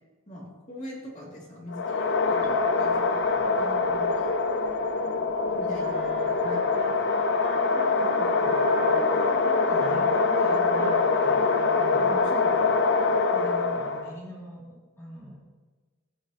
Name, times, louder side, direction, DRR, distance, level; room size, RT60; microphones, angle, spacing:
voice 1, 0.3-4.3 5.5-6.8 7.1-7.2 11.9-12.7, left 1 dB, 35° left, -4 dB, 2.6 m, -42 dB
sound 1, 1.7-14.2, left 4 dB, 55° left, 0.7 m, -24 dB
Chink clink, 2.4-8.7, right 3 dB, 20° right, 1.0 m, -43 dB
Wind instrument woodwind instrument, 5.8-12.2, right 3 dB, 55° right, 0.8 m, -41 dB
voice 2, 7.9-11.5 11.8-12.1 13.3-15.4, equal, 15° left, -6 dB, 2.8 m, -43 dB
15.5 x 6.8 x 3.0 m, 1.3 s
head